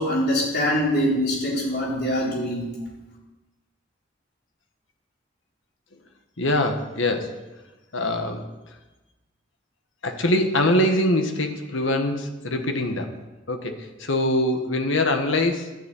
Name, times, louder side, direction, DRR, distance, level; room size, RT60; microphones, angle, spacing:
voice 1, 0.0-2.7, equal, 50° left, -3 dB, 4.3 m, -23 dB
voice 2, 6.4-7.4 7.9-8.4 10.0-13.1 13.5-15.7, left 1 dB, 75° left, 5 dB, 1.5 m, -23 dB
12.0 x 9.3 x 8.4 m, 1.1 s
head